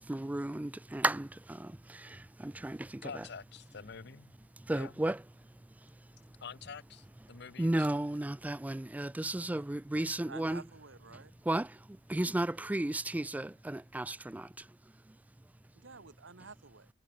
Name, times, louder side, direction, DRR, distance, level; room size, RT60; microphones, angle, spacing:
voice 1, 0.0-3.3 4.6-5.2 5.8-5.9 7.6-10.6 11.5-14.7 15.1-15.2, right 1 dB, 10° right, 0.3 m, -34 dB
voice 2, 3.0-4.3 4.7-4.9 6.4-8.0, left 6 dB, 60° left, 0.7 m, -47 dB
sound 1, 3.0-4.7 5.1-7.6 8.3-14.7, equal, 30° left, 6.6 m, -71 dB
voice 3, 9.9-11.3 15.7-16.9, right 4 dB, 80° right, 1.5 m, -51 dB
head